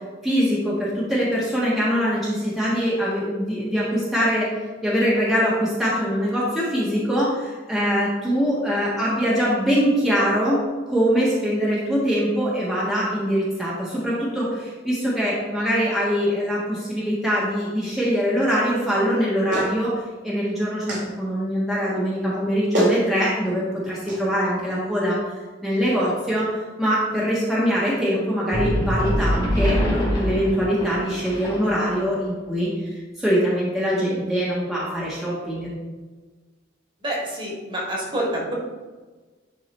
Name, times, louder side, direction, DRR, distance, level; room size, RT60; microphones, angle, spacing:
voice 1, 0.2-4.5 4.8-19.9 20.2-25.2 25.6-26.5 26.8-32.7 33.2-35.7, equal, ahead, -8 dB, 1.4 m, -23 dB
Clapping, 19.5-19.7 20.9-21.1 22.3-22.4 22.7-23.0 24.1-24.2, equal, 70° right, 2.3 m, -23 dB
sound 1, 28.5-32.0, equal, 25° left, 2.5 m, -24 dB
voice 2, 37.0-38.5, right 1 dB, 25° right, -4 dB, 1.9 m, -27 dB
10.5 x 3.8 x 4.3 m, 1.3 s
head